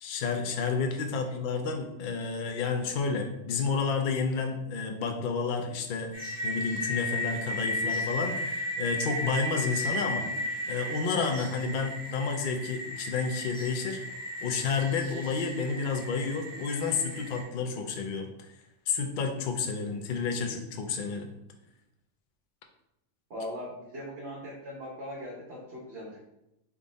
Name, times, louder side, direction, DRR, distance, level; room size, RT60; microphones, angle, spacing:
voice 1, 0.0-10.2 10.7-18.3 18.9-21.3, left 5 dB, 55° left, 4 dB, 0.6 m, -30 dB
sound 1, 6.1-17.4, left 1 dB, 5° left, 1.1 m, -35 dB
voice 2, 23.3-26.2, equal, 65° right, -5 dB, 1.1 m, -40 dB
3.5 x 2.5 x 3.9 m, 0.87 s
omnidirectional pair, 1.2 m